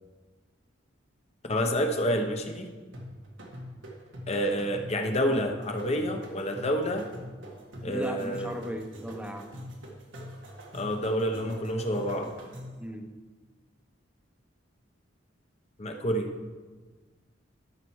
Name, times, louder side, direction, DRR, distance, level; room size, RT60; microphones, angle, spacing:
voice 1, 1.5-2.7 4.3-7.1 7.8-8.7 10.7-12.3 15.8-16.3, equal, 35° left, 4 dB, 1.0 m, -28 dB
sound 1, 2.9-12.9, equal, 85° right, 1.7 m, -44 dB
voice 2, 7.8-9.5 12.8-13.1, equal, 5° right, 5 dB, 0.8 m, -36 dB
13.0 x 5.8 x 4.7 m, 1.4 s
head